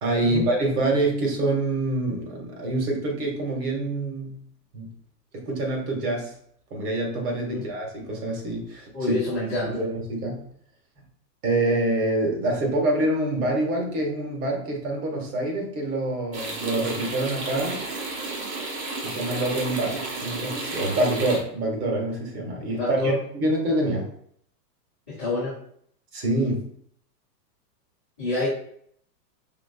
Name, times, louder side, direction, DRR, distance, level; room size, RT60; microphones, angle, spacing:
voice 1, 0.0-4.4 4.7-4.9 5.3-6.3 6.7-9.2 9.6-10.5 11.4-17.8 19.0-24.1 26.1-26.7, right 2 dB, 65° right, 0 dB, 1.7 m, -26 dB
voice 2, 8.9-9.8 22.8-23.2 25.1-25.5 28.2-28.5, left 2 dB, 10° right, -11 dB, 0.3 m, -27 dB
sound 1, 16.3-21.4, right 3 dB, 85° right, 1.5 m, -32 dB
5.0 x 3.4 x 2.3 m, 0.65 s
supercardioid pair, 170°, 48 cm